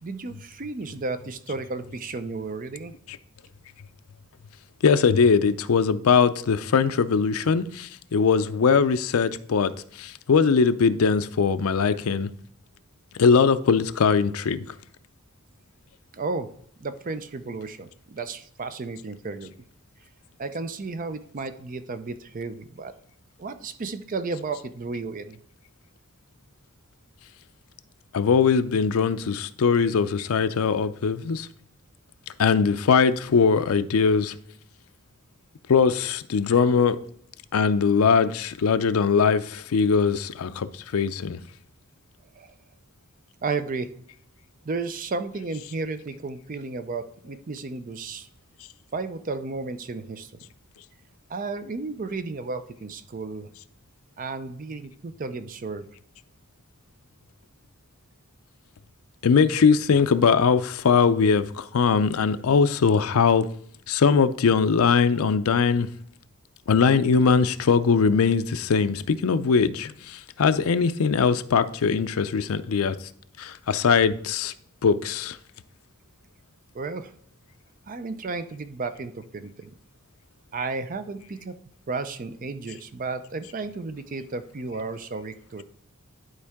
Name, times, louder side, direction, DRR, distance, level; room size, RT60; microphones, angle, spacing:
voice 1, 0.0-2.9 16.1-16.5 16.8-19.5 20.4-22.9 23.4-25.4 42.4-42.5 43.4-43.9 44.7-48.3 48.9-50.3 51.3-53.5 54.2-55.9 76.7-77.1 77.9-79.7 80.5-81.6 81.9-85.6, right 3 dB, 40° right, 0.5 m, -33 dB
voice 2, 4.8-9.7 10.0-12.3 13.2-14.6 28.1-31.5 32.4-34.3 35.7-37.0 37.5-41.4 59.2-63.5 63.9-65.9 66.7-73.0 73.4-74.5 74.8-75.4, left 5 dB, 75° left, 0.5 m, -21 dB
11.5 x 4.5 x 3.5 m
head